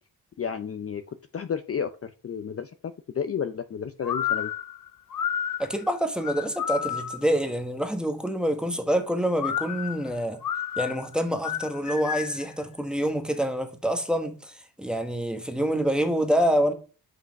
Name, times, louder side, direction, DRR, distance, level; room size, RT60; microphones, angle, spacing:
voice 1, 0.4-1.0 1.3-4.5, left 7 dB, 35° left, 0.5 m, -32 dB
sound 1, 4.0-7.4 9.4-12.5, left 9 dB, 50° left, 0.9 m, -31 dB
voice 2, 5.6-10.4 10.8-16.7, equal, ahead, 1.2 m, -26 dB
5.8 x 5.6 x 5.2 m
cardioid pair, 95°, 41 cm